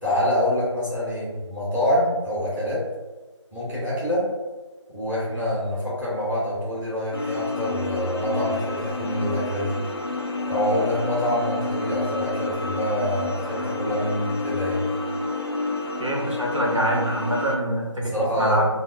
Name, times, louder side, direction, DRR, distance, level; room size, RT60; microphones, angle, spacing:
voice 1, 0.0-2.8 3.5-4.3 4.9-9.8 10.4-14.8 18.0-18.6, left 1 dB, 5° right, -24 dB, 0.8 m, -26 dB
sound 1, 7.1-17.6, left 3 dB, 50° left, 0.4 m, -29 dB
voice 2, 16.0-18.7, right 1 dB, 75° right, -2 dB, 0.8 m, -25 dB
2.1 x 2.0 x 3.3 m, 1.3 s
figure-of-eight pair, 170°, 16 cm